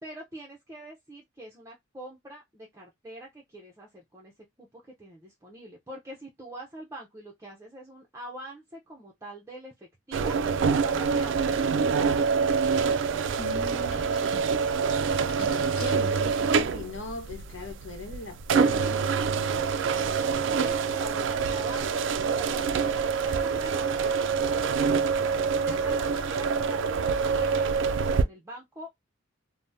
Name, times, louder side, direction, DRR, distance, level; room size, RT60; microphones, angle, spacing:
voice 1, 0.0-4.3 4.6-10.4 10.8-12.0 13.7-13.9 20.0-25.2 25.6-27.7 28.2-28.9, right 1 dB, 15° right, 0.5 m, -44 dB
sound 1, 10.1-28.2, right 5 dB, 65° right, 0.3 m, -26 dB
sound 2, 12.4-16.7 17.1-17.5, left 2 dB, 55° left, 1.3 m, -49 dB
voice 2, 13.4-14.3 15.4-19.2, left 3 dB, 75° left, 0.9 m, -40 dB
3.4 x 2.0 x 2.6 m
head